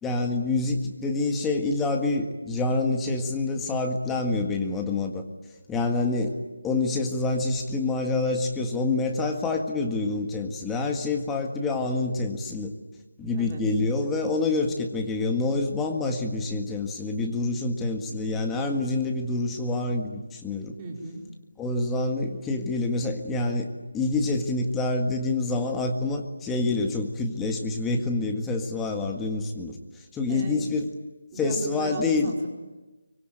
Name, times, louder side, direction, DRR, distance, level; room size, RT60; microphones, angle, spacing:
voice 1, 0.0-5.2 5.7-6.4 6.6-12.7 13.2-20.7 21.6-23.7 23.9-29.8 30.1-30.9 31.4-32.3, left 3 dB, 5° left, 3 dB, 1.7 m, -27 dB
voice 2, 13.3-13.6 20.8-21.2 30.3-30.6 31.3-32.5, right 2 dB, 15° right, -2 dB, 4.5 m, -35 dB
25.0 x 24.5 x 9.2 m, 1.2 s
figure-of-eight pair, 170°, 0 cm